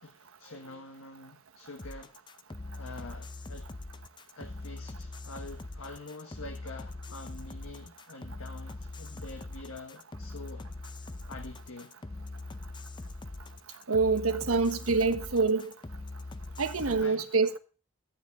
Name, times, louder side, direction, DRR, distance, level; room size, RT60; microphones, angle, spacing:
voice 1, 0.0-2.1 2.8-3.7 4.4-10.7 11.3-11.9 16.8-17.3, left 2 dB, 75° left, 1.5 m, -46 dB
sound 1, 1.8-17.0, left 2 dB, 20° left, 0.6 m, -42 dB
voice 2, 13.9-15.7 16.6-17.6, right 4 dB, 80° right, 1.2 m, -26 dB
14.5 x 9.2 x 3.6 m
head